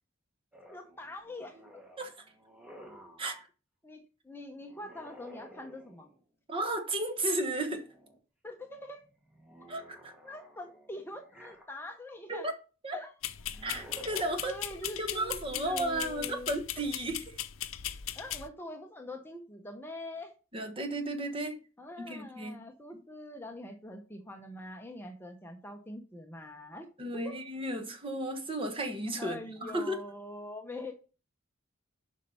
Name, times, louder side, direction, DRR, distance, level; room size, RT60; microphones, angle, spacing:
sound 1, 0.5-3.3 4.6-6.2 7.1-8.2 8.6-12.1 13.4-14.4, equal, 5° right, 1.4 m, -54 dB
voice 1, 0.7-1.6 3.8-6.1 8.4-9.1 10.2-12.5 12.9-13.1 14.4-16.5 18.1-20.3 21.8-26.9 27.2-27.4 29.2-30.9, left 1 dB, 10° left, 0.8 m, -44 dB
voice 2, 6.5-7.9 9.7-10.1 12.3-12.5 12.8-13.0 13.6-17.4 20.5-21.6 22.0-22.6 27.0-30.0, right 1 dB, 25° right, 1.1 m, -34 dB
sound 2, 13.2-18.5, left 12 dB, 85° left, 0.6 m, -38 dB
7.3 x 5.4 x 5.4 m
head